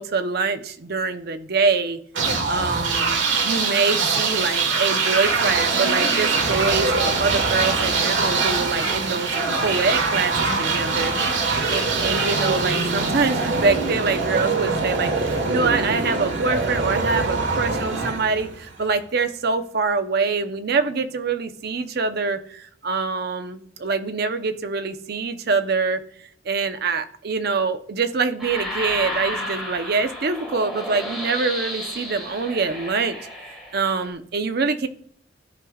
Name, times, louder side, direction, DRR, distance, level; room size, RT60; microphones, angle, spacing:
voice 1, 0.0-2.0 2.5-10.3 10.6-11.1 11.4-26.0 26.4-33.2 33.7-34.9, right 4 dB, 60° right, 9 dB, 0.7 m, -25 dB
sound 1, 2.1-18.9, right 4 dB, 85° right, 1.4 m, -23 dB
sound 2, 28.4-34.1, left 1 dB, ahead, 2.1 m, -32 dB
14.0 x 5.0 x 2.3 m, 0.64 s
head